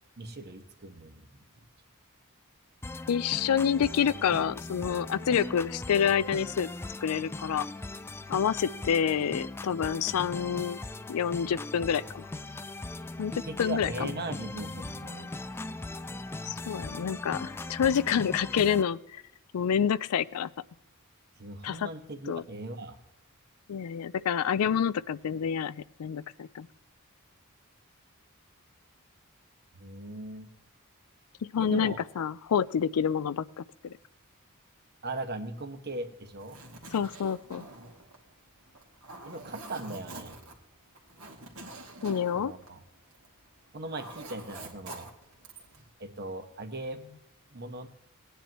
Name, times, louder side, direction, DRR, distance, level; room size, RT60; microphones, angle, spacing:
voice 1, 0.2-1.3 13.4-15.3 21.4-23.0 29.8-30.5 31.6-32.0 35.0-36.6 39.3-40.4 42.3-42.8 43.7-45.1 45.8-47.0 47.5-47.9, right 2 dB, 50° right, 7 dB, 1.2 m, -39 dB
sound 1, 2.8-18.8, left 2 dB, 10° left, 0.3 m, -39 dB
voice 2, 3.1-6.7 7.0-7.7 8.3-10.8 11.1-12.3 13.2-13.3 13.6-14.1 16.5-19.2 19.5-20.5 21.6-21.9 22.3-22.4 23.7-26.7 31.5-33.9 36.9-37.7 42.0-42.5, left 8 dB, 85° left, 18 dB, 0.4 m, -28 dB
Zipper (clothing), 36.3-43.4 43.7-45.8, right 2 dB, 70° right, 2.2 m, -46 dB
18.0 x 10.0 x 3.0 m, 0.80 s
head